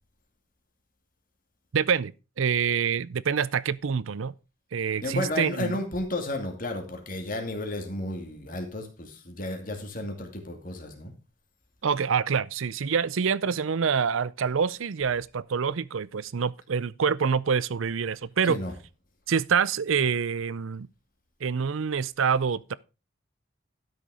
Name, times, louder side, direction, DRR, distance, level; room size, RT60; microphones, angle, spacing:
voice 1, 1.7-2.1 2.4-4.3 4.7-5.8 11.8-18.6 19.3-20.9 21.4-22.8, right 6 dB, 75° right, 0.5 m, -26 dB
voice 2, 5.0-11.1 18.4-18.7, left 1 dB, 40° left, 2.5 m, -33 dB
12.5 x 6.5 x 4.9 m
head